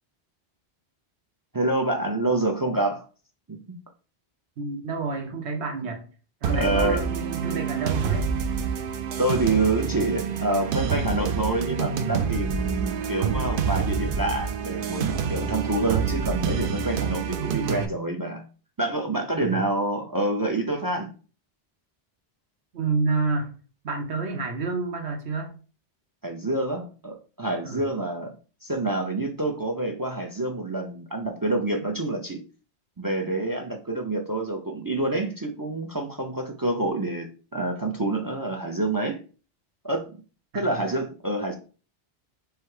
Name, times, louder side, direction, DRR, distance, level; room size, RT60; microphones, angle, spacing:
voice 1, 1.5-3.1 3.5-3.8 6.5-7.0 9.2-18.4 18.8-21.1 26.2-28.3 28.6-32.4 33.0-39.2 39.8-40.1 40.5-41.6, right 2 dB, 30° right, 3 dB, 0.4 m, -27 dB
voice 2, 4.6-6.1 6.4-8.3 19.4-19.6 22.7-23.5 23.8-25.5 27.6-27.9 40.5-40.8, right 3 dB, 80° right, 3 dB, 1.2 m, -29 dB
sound 1, 6.4-17.9, right 6 dB, 60° right, 0.7 m, -27 dB
3.2 x 3.2 x 4.6 m, 0.37 s
omnidirectional pair, 1.1 m